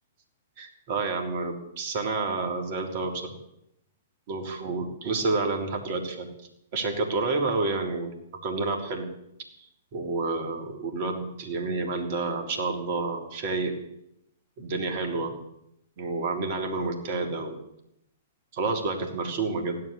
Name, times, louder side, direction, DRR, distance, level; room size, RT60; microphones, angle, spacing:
voice 1, 0.6-3.3 4.3-6.3 6.7-8.1 8.4-9.1 9.9-13.8 14.6-15.3 16.0-17.6 18.5-19.8, right 3 dB, 45° right, 4 dB, 3.4 m, -29 dB
16.0 x 11.5 x 6.9 m, 0.78 s
figure-of-eight pair, 110°, 0 cm